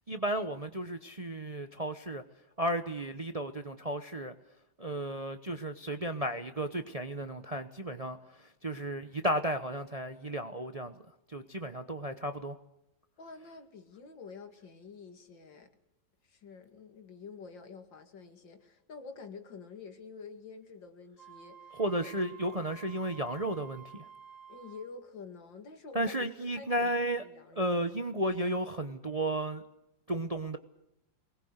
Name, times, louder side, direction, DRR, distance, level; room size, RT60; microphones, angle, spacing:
voice 1, 0.1-2.2 2.6-4.3 4.8-8.2 8.6-10.9 11.3-12.6 21.8-24.0 25.9-27.2 27.5-29.6 30.1-30.6, right 1 dB, 30° right, 0.8 m, -33 dB
voice 2, 13.2-15.7 16.2-22.2 24.5-27.8, left 4 dB, 80° left, 2.9 m, -48 dB
Wind instrument woodwind instrument, 21.2-24.9, right 8 dB, 40° left, 4.7 m, -52 dB
22.5 x 20.0 x 8.1 m
omnidirectional pair, 2.0 m